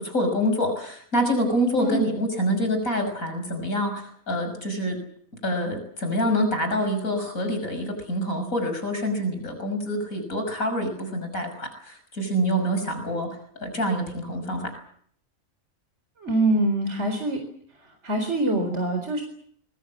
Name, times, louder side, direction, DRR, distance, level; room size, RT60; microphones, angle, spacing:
voice 1, 0.0-5.0 5.4-14.7, equal, 80° left, 6 dB, 6.5 m, -26 dB
voice 2, 16.2-17.4 18.0-19.2, right 1 dB, 55° right, 5 dB, 4.7 m, -24 dB
25.5 x 22.5 x 7.4 m, 0.62 s
omnidirectional pair, 1.4 m